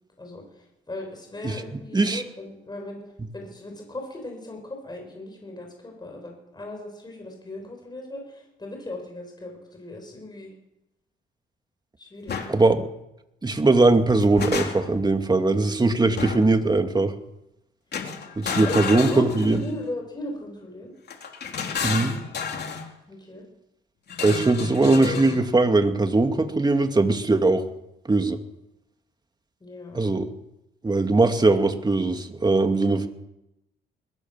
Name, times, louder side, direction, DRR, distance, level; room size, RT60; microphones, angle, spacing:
voice 1, 0.2-3.0 3.3-10.5 12.0-12.5 18.6-20.9 23.1-23.5 29.6-30.1, left 2 dB, 20° left, 1 dB, 7.0 m, -37 dB
sound 1, 12.3-12.5 13.9-15.1 16.2-16.6 17.9-19.8 21.1-22.9 24.1-25.4, left 6 dB, 55° left, 3.4 m, -31 dB
voice 2, 12.5-12.8 13.4-17.1 18.4-19.6 21.8-22.2 24.2-27.7 28.1-28.4 29.9-30.3 30.8-33.1, right 3 dB, 20° right, 6 dB, 2.5 m, -20 dB
21.5 x 18.5 x 7.6 m, 0.90 s
cardioid pair, 90°, 20 cm